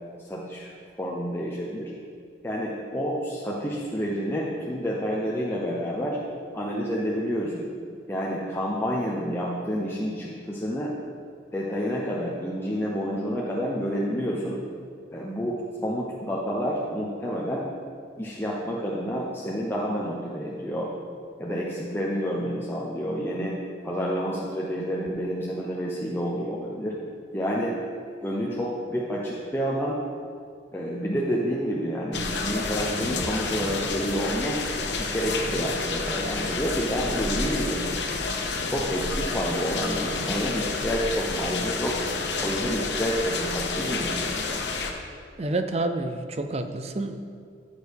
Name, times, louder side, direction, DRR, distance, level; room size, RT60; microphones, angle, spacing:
voice 1, 0.2-0.7 1.0-1.9 2.4-6.2 6.5-7.7 8.1-10.9 11.5-14.6 15.1-17.6 18.2-20.9 21.4-23.5 23.8-26.9 27.3-27.8 28.2-30.0 30.7-34.6 35.0-37.8 38.6-42.0 42.4-44.1, equal, 10° left, -5 dB, 0.7 m, -29 dB
sound 1, 32.1-44.9, left 3 dB, 75° left, 0.9 m, -29 dB
voice 2, 45.4-47.2, right 2 dB, 35° right, 7 dB, 0.5 m, -28 dB
14.0 x 6.4 x 3.5 m, 2.2 s
head